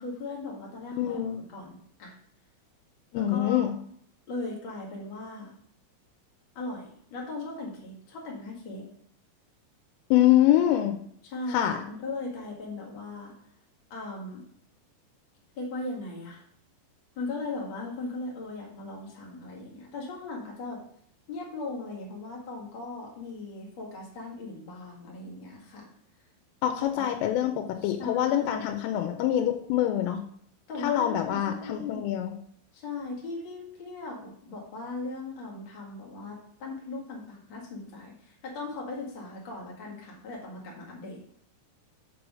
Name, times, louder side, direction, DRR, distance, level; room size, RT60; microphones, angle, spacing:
voice 1, 0.0-2.1 3.1-3.7 4.3-5.5 6.5-8.9 11.2-13.3 13.9-14.4 15.5-16.4 17.1-20.8 21.3-25.9 26.8-27.1 27.8-28.7 30.7-32.1 32.7-41.2, left 2 dB, 65° left, -3 dB, 1.2 m, -38 dB
voice 2, 1.0-1.4 3.1-3.7 10.1-11.0 11.5-11.8 26.6-30.2 30.8-32.3, left 12 dB, 85° left, 5 dB, 3.2 m, -25 dB
6.7 x 4.8 x 6.2 m, 0.64 s
omnidirectional pair, 5.8 m